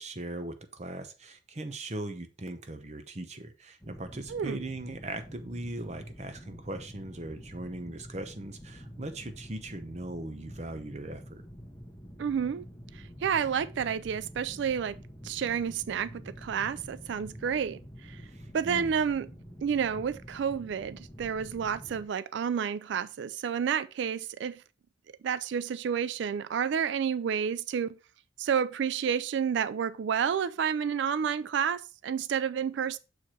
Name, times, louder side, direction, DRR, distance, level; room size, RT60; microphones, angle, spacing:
voice 1, 0.0-11.4 18.3-18.9, right 2 dB, 35° right, 0.8 m, -39 dB
sound 1, 3.8-22.0, equal, 15° left, 1.0 m, -47 dB
voice 2, 12.2-12.6 12.9-18.2 18.5-19.3 19.6-24.6 25.2-27.9 28.4-33.0, right 7 dB, 70° right, 0.3 m, -30 dB
6.5 x 4.6 x 4.3 m
head